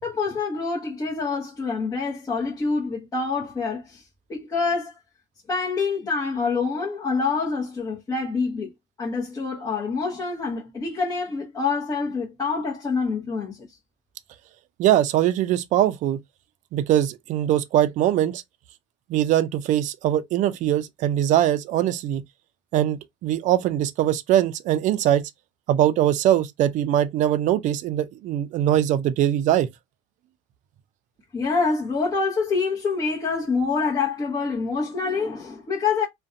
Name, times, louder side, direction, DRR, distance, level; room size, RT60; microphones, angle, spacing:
voice 1, 0.0-4.0 4.3-5.0 5.5-8.7 9.0-13.7 31.3-36.1, left 4 dB, 25° left, 0.8 m, -26 dB
voice 2, 14.8-16.2 16.7-18.4 19.1-22.2 22.7-25.2 25.7-29.7, right 12 dB, 50° right, 0.4 m, -22 dB
2.5 x 2.1 x 2.5 m
cardioid pair, 120°, 16 cm